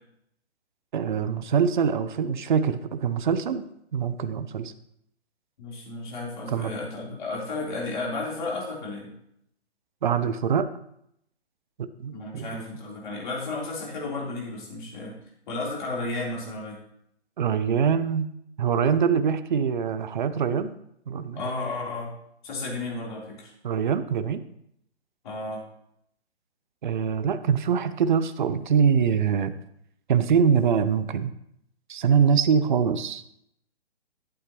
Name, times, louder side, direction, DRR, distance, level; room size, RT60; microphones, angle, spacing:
voice 1, 0.9-3.6 3.9-4.7 6.5-6.7 10.0-10.7 11.8-12.6 17.4-18.3 18.6-20.7 21.1-21.4 23.6-24.4 26.8-29.5 30.1-31.3 31.9-33.2, right 7 dB, 45° right, 12 dB, 0.6 m, -24 dB
voice 2, 5.6-9.1 12.1-15.1 15.5-16.8 21.4-22.2 22.4-23.5 25.2-25.6, left 2 dB, 45° left, -4 dB, 3.7 m, -33 dB
11.5 x 8.6 x 3.1 m, 0.73 s
figure-of-eight pair, 135°, 34 cm